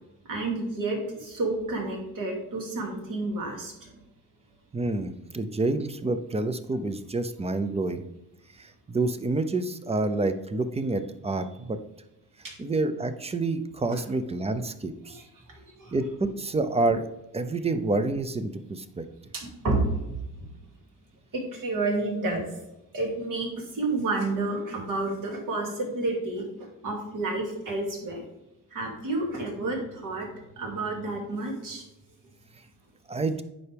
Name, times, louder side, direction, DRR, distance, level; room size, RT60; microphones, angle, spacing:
voice 1, 0.2-4.0 12.4-12.5 13.9-14.0 15.0-16.0 19.3-20.5 21.3-22.5 22.9-28.2 28.7-30.3 30.6-31.8, right 2 dB, 60° right, 0 dB, 2.6 m, -30 dB
voice 2, 4.7-8.0 8.6-11.8 12.6-15.2 15.9-17.1 17.3-19.0 33.1-33.4, right 2 dB, 20° right, 10 dB, 0.6 m, -28 dB
9.2 x 5.7 x 3.4 m, 0.92 s
cardioid pair, 110°, 35 cm